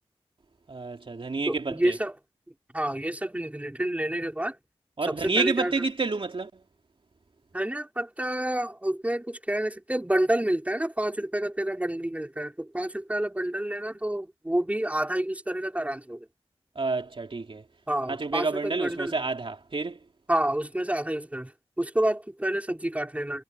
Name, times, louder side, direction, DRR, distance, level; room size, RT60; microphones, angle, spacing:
voice 1, 0.7-1.9 5.0-6.5 16.7-17.6 18.0-20.0, right 3 dB, 55° right, 3.1 m, -29 dB
voice 2, 1.5-2.1 2.7-4.5 5.0-5.7 7.5-16.2 17.9-19.2 20.3-21.5 21.8-23.4, right 1 dB, 15° right, 4.7 m, -28 dB
wide cardioid pair, 70°, 11 cm